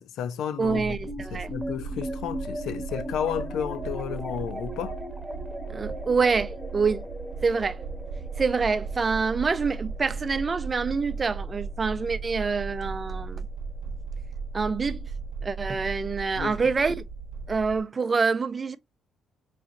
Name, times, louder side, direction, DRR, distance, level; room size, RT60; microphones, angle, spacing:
voice 1, 0.0-1.0 1.3-5.0 16.4-16.6, left 8 dB, 80° left, 0.4 m, -32 dB
sound 1, 0.6-13.2, equal, 10° right, 1.0 m, -39 dB
voice 2, 0.6-1.5 5.7-7.1 7.4-7.8 8.4-13.5 14.5-15.1 15.4-16.9 17.5-18.8, right 4 dB, 35° right, 0.4 m, -26 dB
sound 2, 0.6-17.8, right 4 dB, 85° right, 0.7 m, -37 dB
4.8 x 3.1 x 2.5 m
cardioid pair, 90°, 0 cm